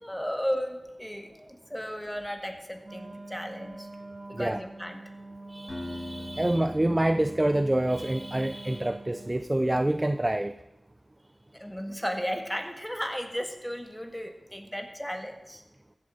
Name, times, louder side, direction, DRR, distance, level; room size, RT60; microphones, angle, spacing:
voice 1, 0.0-3.9 4.3-5.0 11.5-15.6, equal, 10° left, 5 dB, 1.7 m, -34 dB
Wind instrument woodwind instrument, 2.8-9.5, right 2 dB, 60° right, 1.9 m, -45 dB
voice 2, 5.5-10.5, right 1 dB, 25° right, 11 dB, 0.4 m, -27 dB
Acoustic guitar, 5.7-8.7, left 1 dB, 40° left, 5.3 m, -42 dB
15.0 x 7.5 x 5.1 m, 0.98 s
cardioid pair, 40°, 0 cm